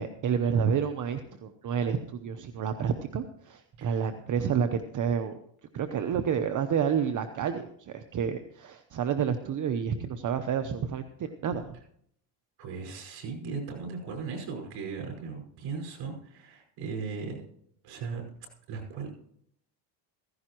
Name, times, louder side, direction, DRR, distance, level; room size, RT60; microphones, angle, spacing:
voice 1, 0.0-5.4 5.7-11.7, right 7 dB, 45° right, 8 dB, 0.9 m, -29 dB
voice 2, 12.6-17.4 17.8-18.2 18.7-19.1, right 5 dB, 75° right, 1 dB, 5.4 m, -37 dB
16.0 x 15.5 x 3.0 m, 0.68 s
cardioid pair, 125°, 45 cm